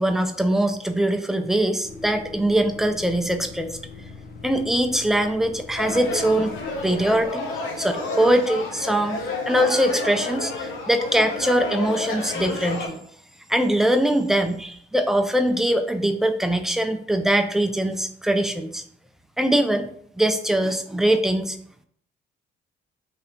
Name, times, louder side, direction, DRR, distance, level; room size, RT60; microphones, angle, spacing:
voice 1, 0.0-3.7 4.4-7.5 7.8-9.2 9.5-13.1 13.5-18.8 19.4-19.9 20.2-21.6, right 1 dB, ahead, 6 dB, 0.4 m, -22 dB
sound 1, 1.8-7.3, left 3 dB, 50° left, 0.6 m, -42 dB
sound 2, 5.8-12.9, left 3 dB, 85° left, 0.8 m, -30 dB
3.3 x 2.7 x 3.8 m, 0.64 s
cardioid pair, 90°, 20 cm